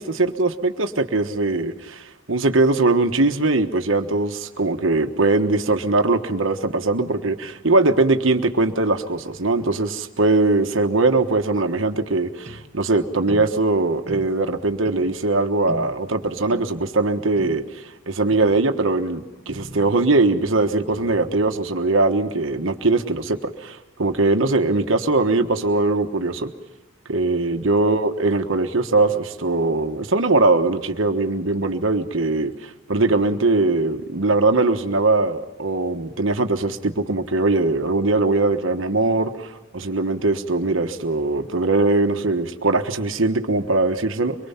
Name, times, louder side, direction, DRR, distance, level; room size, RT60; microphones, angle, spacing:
voice 1, 0.0-26.5 27.1-44.4, right 2 dB, 70° right, 7 dB, 1.3 m, -21 dB
sound 1, 12.5-12.7 13.3-13.5 14.1-14.3 14.8-15.1 15.7-15.9 16.5-16.7 17.4-17.6 18.3-18.6 19.5-20.1 20.9-21.6, right 1 dB, 35° right, 1.4 m, -37 dB
24.0 x 22.5 x 5.8 m, 1.0 s
head